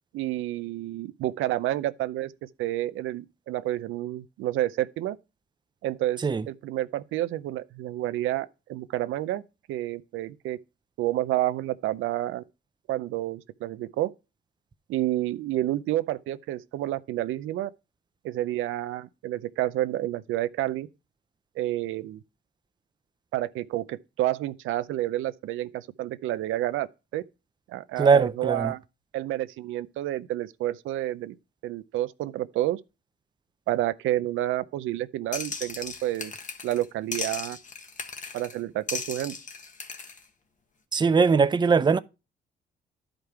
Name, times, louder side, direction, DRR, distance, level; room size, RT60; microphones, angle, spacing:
voice 1, 0.1-5.2 5.8-9.4 9.7-10.6 11.0-12.4 12.9-14.1 14.9-17.7 18.2-20.9 21.6-22.2 23.3-26.9 27.1-27.2 27.7-28.8 29.1-31.4 31.6-32.8 33.7-36.3 36.6-37.6 38.3-39.4, right 14 dB, 85° right, 0.6 m, -29 dB
voice 2, 28.0-28.7 40.9-42.0, right 5 dB, 20° right, 0.5 m, -21 dB
sound 1, 35.3-36.9 37.1-38.6 38.9-40.2, left 4 dB, 40° left, 1.3 m, -36 dB
11.5 x 5.2 x 4.6 m
cardioid pair, 90°, 20 cm